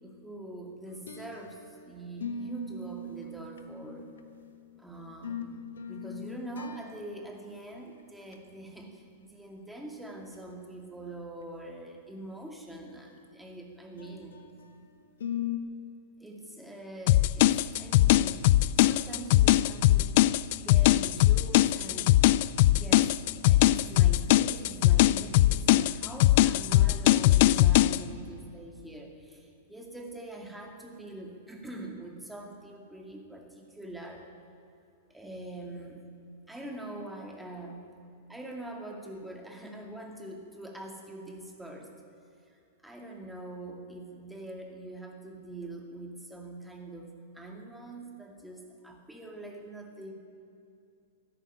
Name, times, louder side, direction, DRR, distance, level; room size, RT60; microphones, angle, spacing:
voice 1, 0.0-4.1 4.8-14.4 16.2-20.1 20.5-22.1 22.7-34.3 35.1-36.1 36.5-37.9 38.3-41.9 42.5-50.1, right 2 dB, 5° right, 1 dB, 2.3 m, -44 dB
sound 1, 0.9-1.8 2.2-4.4 5.0-7.4 7.7-7.8 8.2-8.3 9.8-9.9 10.3-10.5 14.0-14.7 15.2-15.6, left 6 dB, 80° left, 1.4 m, -39 dB
sound 2, 17.1-28.0, left 15 dB, 55° left, 0.4 m, -21 dB
15.0 x 11.0 x 8.6 m, 2.6 s
hypercardioid pair, 115°, 0 cm